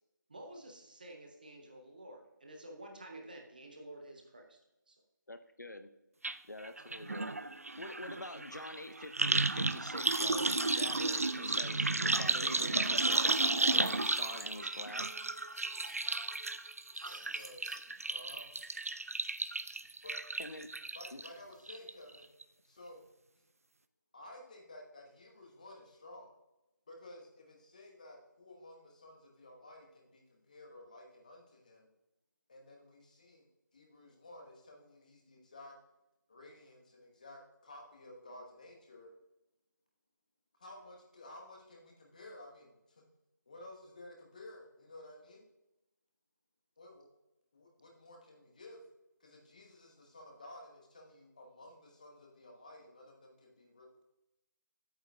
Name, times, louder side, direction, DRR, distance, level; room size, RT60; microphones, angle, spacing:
voice 1, 0.3-4.6 4.9-5.0 17.0-17.3, right 1 dB, 25° right, 2 dB, 0.8 m, -51 dB
voice 2, 5.3-5.9 6.5-7.3 7.8-15.1 20.4-20.7 21.1-21.2, left 2 dB, 65° left, 9 dB, 0.6 m, -46 dB
sound 1, 6.2-6.4 6.6-21.3 21.7-22.2 22.4-22.5, right 2 dB, 50° right, 0.4 m, -33 dB
sound 2, 12.5-14.0 14.4-14.5 14.7-15.9 16.4-17.8, right 1 dB, 75° right, 1.7 m, -57 dB
voice 3, 17.2-17.6 18.1-18.5 20.0-20.2 20.9-22.3 22.6-23.0 24.1-26.3 26.9-31.9 32.5-33.5 33.7-35.7 36.3-39.1 40.6-43.0 43.5-45.5 46.8-47.1 47.5-48.8 49.2-54.0, left 1 dB, 25° left, 1 dB, 1.2 m, -53 dB
10.0 x 8.8 x 2.3 m, 0.94 s
figure-of-eight pair, 165°, 10 cm